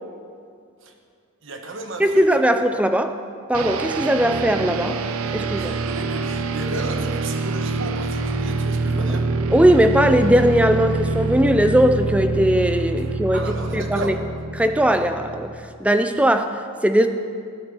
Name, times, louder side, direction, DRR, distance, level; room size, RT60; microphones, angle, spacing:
voice 1, 1.4-2.3 5.6-9.3 13.3-14.2, right 2 dB, 60° right, 4 dB, 1.2 m, -33 dB
voice 2, 2.0-3.1 3.5-5.0 5.3-5.7 9.5-13.5 13.7-14.1 14.6-15.5 15.8-17.1, right 1 dB, 5° right, 8 dB, 0.4 m, -19 dB
sound 1, 3.5-15.8, right 3 dB, 85° right, 0.6 m, -26 dB
12.5 x 8.4 x 6.1 m, 2.3 s
head